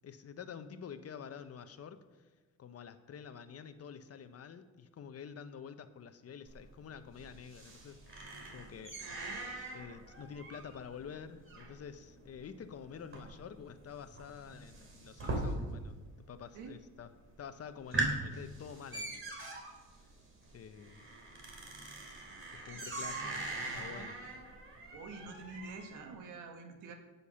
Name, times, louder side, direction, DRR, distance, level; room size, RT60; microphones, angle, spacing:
voice 1, 0.0-2.3 2.6-9.2 9.7-15.9 16.3-19.2 20.5-21.0 22.6-23.4 23.7-24.2, left 7 dB, 55° left, 10 dB, 1.1 m, -48 dB
sound 1, 6.5-16.0 16.3-16.9 17.3-17.4 17.7-26.0, right 2 dB, 45° right, 3.7 m, -41 dB
voice 2, 24.9-26.9, right 4 dB, 85° right, 4 dB, 2.0 m, -47 dB
17.0 x 7.1 x 5.8 m, 1.3 s
cardioid pair, 90°, 30 cm